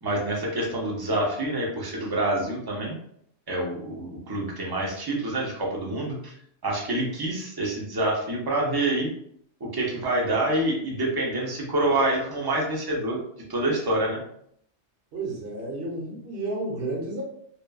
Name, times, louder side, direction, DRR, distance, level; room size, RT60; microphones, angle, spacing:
voice 1, 0.0-3.0 3.5-6.3 6.6-9.1 9.6-13.2 13.5-14.2, right 1 dB, 30° right, -2 dB, 0.4 m, -27 dB
voice 2, 15.1-17.2, right 2 dB, 75° right, -3 dB, 1.1 m, -31 dB
3.0 x 2.2 x 2.2 m, 0.69 s
omnidirectional pair, 1.2 m